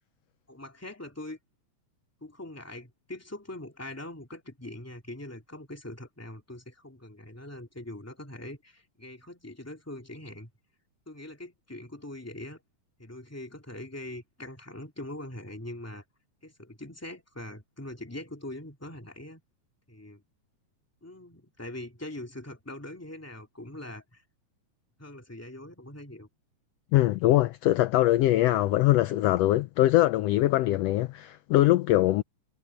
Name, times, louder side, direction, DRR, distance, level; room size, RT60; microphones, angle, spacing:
voice 1, 0.5-1.4 2.2-10.5 11.1-12.6 13.0-16.0 16.4-19.4 19.9-20.2 21.0-24.2 25.0-26.3, left 1 dB, 5° left, 2.7 m, -42 dB
voice 2, 26.9-32.2, left 15 dB, 80° left, 1.4 m, -22 dB
omnidirectional pair, 3.5 m